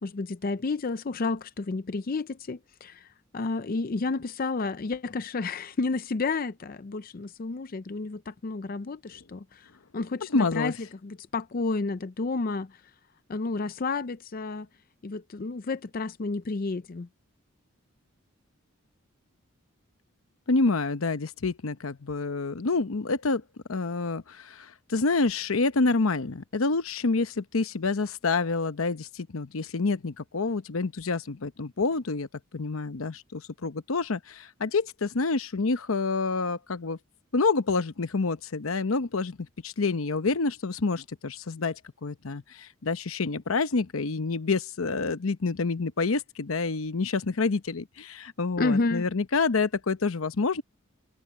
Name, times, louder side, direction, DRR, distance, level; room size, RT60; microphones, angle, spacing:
voice 1, 0.0-3.1 3.3-9.7 9.9-10.7 11.0-12.7 13.3-14.7 15.0-17.1 48.6-49.1, left 3 dB, 45° left, 0.5 m, -31 dB
voice 2, 10.3-10.7 20.5-23.4 23.7-32.3 32.5-37.0 37.3-50.6, left 3 dB, 85° left, 0.8 m, -28 dB
head